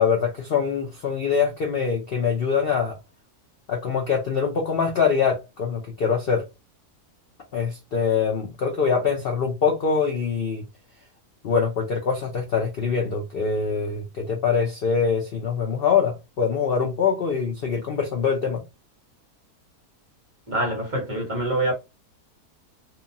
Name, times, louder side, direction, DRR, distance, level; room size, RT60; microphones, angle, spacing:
voice 1, 0.0-3.0 3.7-6.4 7.5-10.6 11.4-18.6, left 6 dB, 65° left, 0.6 m, -24 dB
voice 2, 20.5-21.7, right 1 dB, 40° right, 0.7 m, -25 dB
2.8 x 2.2 x 2.6 m
omnidirectional pair, 1.6 m